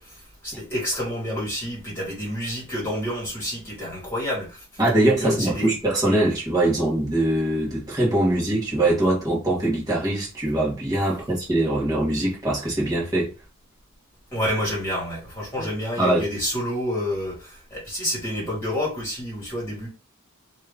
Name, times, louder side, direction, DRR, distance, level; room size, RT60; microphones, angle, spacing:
voice 1, 0.0-4.6 4.9-5.8 14.3-19.9, equal, 10° left, 1.8 m, -29 dB
voice 2, 4.8-13.3 15.6-15.7 16.0-16.2, right 1 dB, 15° right, 1.3 m, -22 dB
3.0 x 2.5 x 3.4 m
head